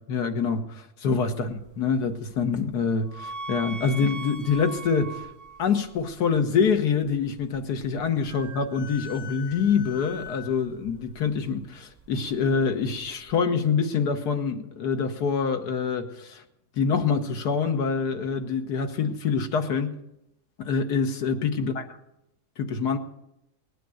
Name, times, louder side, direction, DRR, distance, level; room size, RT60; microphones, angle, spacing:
voice 1, 0.0-5.3 5.6-16.4 16.8-20.0 20.6-21.7 22.6-23.0, left 5 dB, 90° left, 6 dB, 1.8 m, -26 dB
sound 1, 1.2-13.4, equal, 10° right, 1.7 m, -43 dB
19.0 x 9.2 x 7.7 m, 0.84 s
omnidirectional pair, 1.7 m